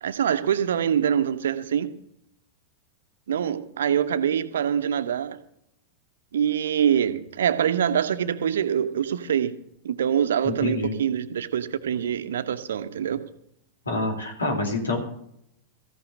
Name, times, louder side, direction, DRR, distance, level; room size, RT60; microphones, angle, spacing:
voice 1, 0.0-1.9 3.3-5.4 6.3-9.5 9.8-13.2, right 9 dB, 65° right, 10 dB, 1.1 m, -24 dB
voice 2, 10.4-10.9 13.9-15.0, left 2 dB, 75° left, 1 dB, 3.7 m, -27 dB
15.0 x 5.9 x 9.1 m, 0.73 s
figure-of-eight pair, 90°, 0 cm